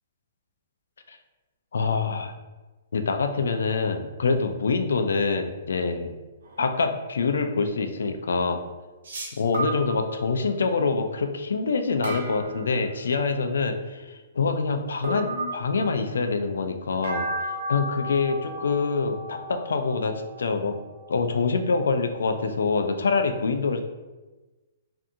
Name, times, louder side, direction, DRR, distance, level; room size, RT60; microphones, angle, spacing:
voice 1, 1.7-2.3 2.9-6.1 6.6-8.6 9.4-17.3 17.7-20.8 21.1-23.8, left 4 dB, 90° left, 6 dB, 0.3 m, -25 dB
sound 1, 6.4-6.7 9.0-10.5 12.0-13.3 15.0-16.2 17.0-21.6, right 1 dB, 85° right, 0.8 m, -34 dB
2.7 x 2.5 x 2.4 m, 1.2 s
hypercardioid pair, 155°, 0 cm